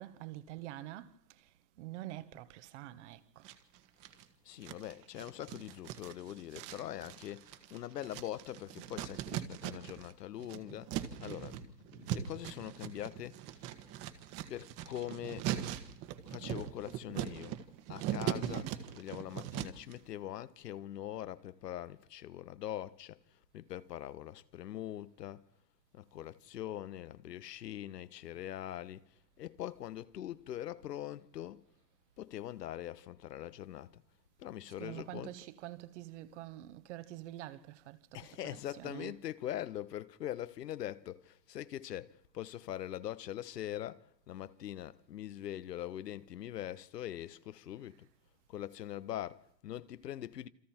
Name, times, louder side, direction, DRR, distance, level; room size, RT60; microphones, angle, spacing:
voice 1, 0.0-3.5 34.7-39.2 47.8-47.9, right 14 dB, 45° right, 1.5 m, -47 dB
sound 1, 3.4-4.2 4.6-10.1 10.4-19.9, right 11 dB, 30° right, 1.6 m, -40 dB
voice 2, 4.4-13.7 14.5-15.5 16.3-17.6 17.9-25.4 25.9-29.0 29.4-31.6 32.2-34.0 34.4-35.5 38.1-48.1 48.5-50.5, left 12 dB, 70° left, 1.3 m, -43 dB
27.5 x 26.0 x 4.5 m
hypercardioid pair, 140°, 50 cm